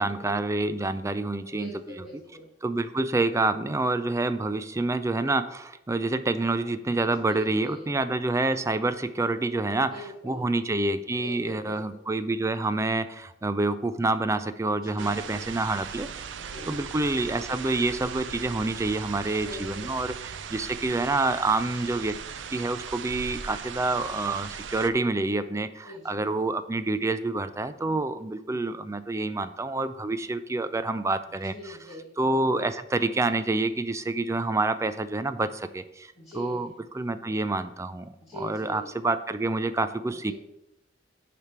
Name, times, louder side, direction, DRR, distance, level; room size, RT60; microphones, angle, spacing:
voice 1, 0.0-2.0 2.6-16.1 16.7-22.2 22.5-31.8 32.2-36.7 36.9-40.3, right 2 dB, 15° right, 11 dB, 0.4 m, -27 dB
voice 2, 1.4-2.5 7.0-7.9 9.8-10.4 11.1-11.8 14.9-15.4 16.3-16.7 19.3-19.9 25.8-26.3 31.5-32.1 36.1-36.6 38.2-38.9 40.0-40.3, left 1 dB, 35° left, -11 dB, 2.7 m, -43 dB
sound 1, 15.0-24.9, right 7 dB, 70° right, 0.5 m, -39 dB
9.6 x 3.4 x 5.8 m, 0.88 s
head